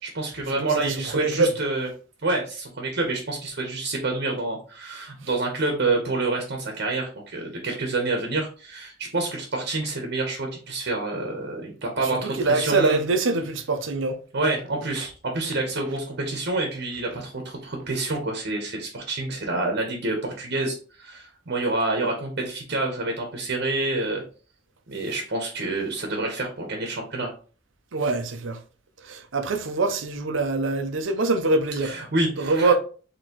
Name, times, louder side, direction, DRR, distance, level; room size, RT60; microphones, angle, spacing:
voice 1, 0.0-1.9 2.2-13.0 14.3-24.2 24.9-27.3 31.8-32.7, right 2 dB, 55° right, 1.0 m, -28 dB
voice 2, 0.6-1.5 12.0-14.2 27.9-28.6 29.0-31.9 32.4-32.7, right 3 dB, 70° right, 0.6 m, -24 dB
4.4 x 2.9 x 2.9 m
head